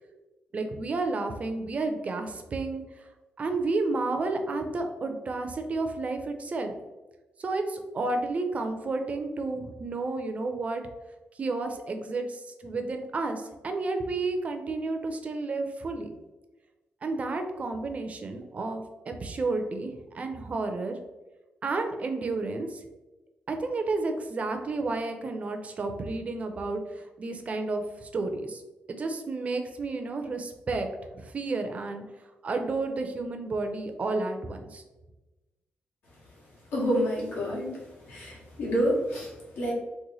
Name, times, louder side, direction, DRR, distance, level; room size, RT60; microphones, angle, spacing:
voice 1, 0.5-2.8 3.4-6.8 7.4-10.8 11.4-16.1 17.0-21.0 21.6-22.8 23.5-28.6 28.9-30.9 31.1-32.0 32.4-34.8, right 3 dB, 35° right, 6 dB, 0.4 m, -31 dB
voice 2, 36.7-37.8 38.1-39.7, equal, 80° left, -5 dB, 1.3 m, -28 dB
3.0 x 2.1 x 3.9 m, 1.1 s
cardioid pair, 120°, 4 cm